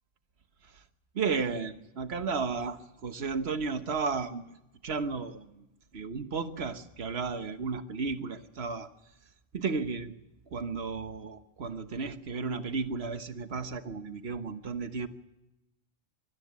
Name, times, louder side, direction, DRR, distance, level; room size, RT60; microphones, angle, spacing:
voice 1, 1.1-4.4 4.8-5.6 5.9-8.9 9.5-10.1 10.5-15.1, right 4 dB, 85° right, 9 dB, 1.5 m, -33 dB
25.0 x 13.0 x 8.2 m, 0.92 s
omnidirectional pair, 1.1 m